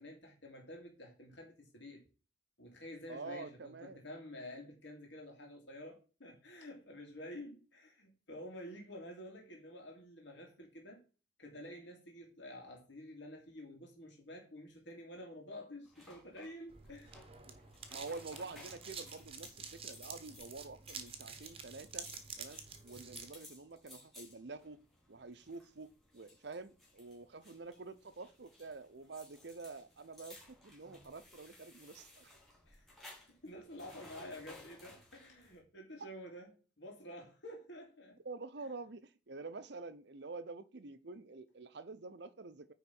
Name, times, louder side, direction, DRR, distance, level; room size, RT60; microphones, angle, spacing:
voice 1, 0.0-2.0 2.6-11.0 11.4-17.2 32.7-38.2, left 1 dB, 65° left, 2.6 m, -50 dB
voice 2, 3.1-4.0 17.5-17.6 17.9-22.1 22.4-24.8 25.1-32.4 38.2-42.7, right 3 dB, 60° right, 0.7 m, -48 dB
sound 1, 15.8-35.6, left 1 dB, ahead, 3.1 m, -59 dB
sound 2, 16.7-23.3, right 6 dB, 30° right, 1.0 m, -49 dB
9.4 x 3.9 x 5.5 m
head